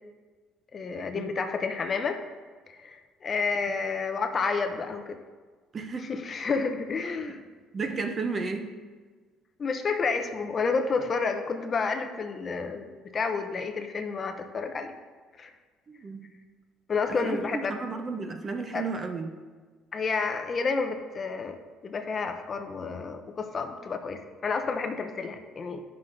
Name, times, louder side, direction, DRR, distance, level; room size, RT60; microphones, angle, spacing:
voice 1, 0.7-2.2 2.7-5.2 6.0-7.4 9.6-14.9 15.4-15.5 16.9-17.7 18.7-18.8 19.9-21.6 21.8-25.8, left 4 dB, 30° left, 6 dB, 0.4 m, -30 dB
voice 2, 5.7-6.1 7.3-7.4 7.7-8.7 15.9-16.3 17.2-19.3, right 4 dB, 25° right, 6 dB, 0.5 m, -33 dB
11.0 x 5.6 x 2.6 m, 1.4 s
cardioid pair, 155°, 0 cm